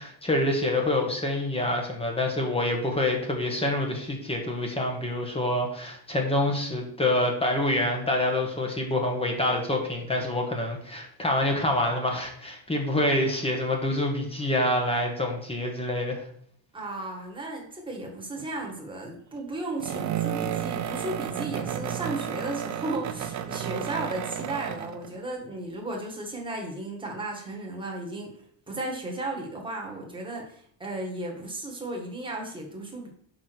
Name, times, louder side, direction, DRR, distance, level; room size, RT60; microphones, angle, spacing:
voice 1, 0.0-16.2, left 1 dB, 10° left, 1 dB, 1.4 m, -26 dB
voice 2, 16.7-33.1, right 2 dB, 10° right, 0 dB, 1.7 m, -35 dB
sound 1, 18.4-18.7 19.8-25.1, right 9 dB, 40° right, 0.6 m, -32 dB
5.5 x 4.9 x 6.1 m, 0.64 s
cardioid pair, 160°, 46 cm